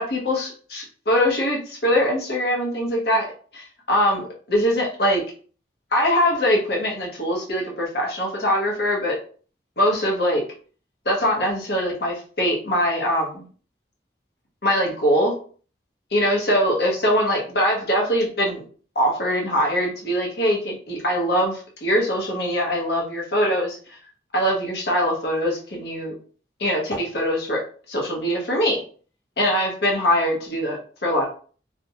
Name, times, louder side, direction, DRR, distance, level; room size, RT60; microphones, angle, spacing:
voice 1, 0.0-3.3 3.5-5.2 5.9-9.2 9.8-10.4 11.0-13.4 14.6-15.4 16.1-18.6 18.9-24.0 24.3-26.1 26.6-27.6 27.9-28.8 29.4-31.3, equal, 65° left, -1 dB, 0.9 m, -22 dB
2.5 x 2.2 x 2.8 m, 0.42 s
head